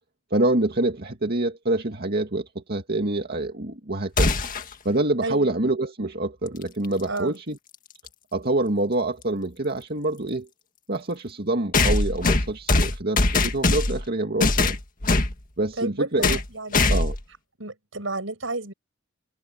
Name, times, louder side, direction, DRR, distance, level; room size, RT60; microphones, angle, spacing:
voice 1, 0.3-4.3 4.8-7.6 8.3-10.5 10.9-14.8 15.6-16.4 16.9-17.2, right 2 dB, 55° right, 2.2 m, -26 dB
sound 1, 4.2-4.7 6.8-6.9 8.1-8.2 11.7-14.1 14.4-15.3 16.2-16.5 16.7-17.2, left 3 dB, 45° left, 1.8 m, -21 dB
voice 2, 5.2-5.5 7.1-7.4 15.8-16.9 17.6-18.7, right 2 dB, 80° right, 7.7 m, -31 dB
head